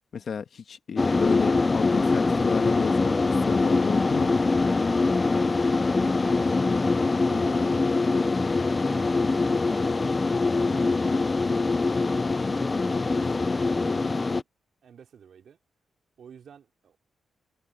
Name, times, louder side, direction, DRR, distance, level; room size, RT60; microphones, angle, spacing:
voice 1, 0.1-4.4, left 6 dB, 55° left, 1.8 m, -32 dB
sound 1, 1.0-14.4, left 3 dB, 25° left, 0.6 m, -23 dB
voice 2, 5.9-7.0 7.2-10.0 10.5-14.5 14.8-15.6 16.2-17.0, right 7 dB, 65° right, 4.7 m, -50 dB
cardioid pair, 110°, 0 cm